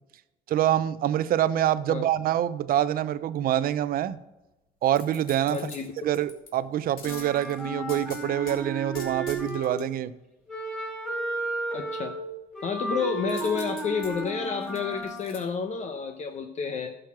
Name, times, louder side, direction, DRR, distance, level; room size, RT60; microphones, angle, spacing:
voice 1, 0.5-4.2 4.8-5.6 6.0-10.1, right 11 dB, 60° right, 15 dB, 0.6 m, -26 dB
sound 1, 4.9-6.5 7.0-8.6 8.9-9.8 13.3-15.4 15.8-15.9, left 5 dB, 60° left, 2.7 m, -45 dB
voice 2, 5.5-6.1 11.7-12.2 12.6-17.0, left 6 dB, 45° left, 6 dB, 0.9 m, -30 dB
Wind instrument woodwind instrument, 7.0-9.9 10.5-15.3, right 2 dB, ahead, 3.7 m, -34 dB
11.5 x 6.3 x 5.9 m, 1.0 s
cardioid pair, 110°, 17 cm